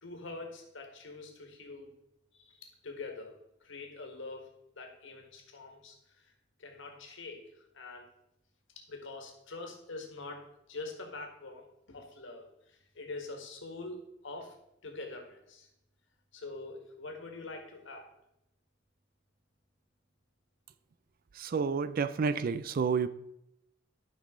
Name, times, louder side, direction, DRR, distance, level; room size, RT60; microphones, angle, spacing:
voice 1, 0.0-1.9 2.3-4.5 4.7-6.3 6.6-8.1 8.7-14.5 14.8-15.7 16.3-18.1, left 3 dB, 65° left, 3 dB, 1.6 m, -45 dB
voice 2, 21.4-23.1, right 5 dB, 45° right, 14 dB, 0.3 m, -30 dB
12.0 x 5.4 x 3.7 m, 0.81 s
head